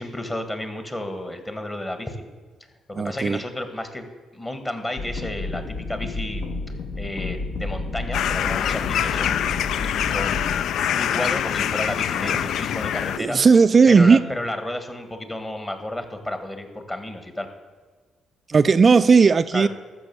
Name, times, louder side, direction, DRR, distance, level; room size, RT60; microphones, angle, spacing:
voice 1, 0.0-2.2 2.9-6.5 6.9-9.6 10.1-13.4 13.9-17.5 19.5-19.7, left 1 dB, 20° left, 7 dB, 1.7 m, -32 dB
voice 2, 3.0-3.4 13.2-14.2 18.5-19.7, right 5 dB, 40° right, 10 dB, 0.3 m, -15 dB
sound 1, 5.0-10.5, left 3 dB, 55° left, 0.9 m, -31 dB
sound 2, 8.1-13.2, left 10 dB, 75° left, 0.3 m, -25 dB
13.0 x 6.2 x 7.1 m, 1.5 s
cardioid pair, 90°, 0 cm